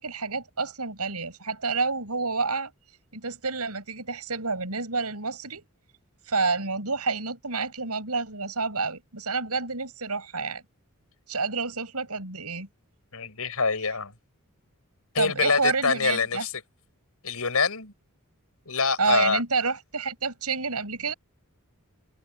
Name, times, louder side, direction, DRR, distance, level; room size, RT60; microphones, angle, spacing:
voice 1, 0.0-2.7 3.1-5.6 6.3-10.6 11.3-12.7 15.2-16.5 19.0-21.1, right 4 dB, 90° right, 7.4 m, -29 dB
voice 2, 13.1-14.1 15.1-16.5 17.2-17.9 18.7-19.4, left 4 dB, 75° left, 6.8 m, -25 dB
head